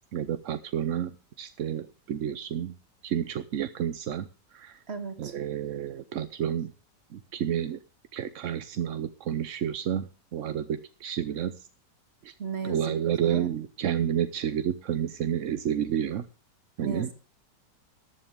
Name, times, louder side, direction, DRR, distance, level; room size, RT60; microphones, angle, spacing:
voice 1, 0.1-1.1 1.4-2.7 3.0-4.8 5.2-6.7 7.1-7.8 8.1-11.5 12.2-12.3 12.6-16.2 16.8-17.1, right 9 dB, 60° right, 12 dB, 0.9 m, -30 dB
voice 2, 4.9-5.3 12.4-12.9 13.2-13.5 16.8-17.1, right 5 dB, 35° right, 7 dB, 2.1 m, -35 dB
14.5 x 11.0 x 3.5 m, 0.36 s
omnidirectional pair, 1.9 m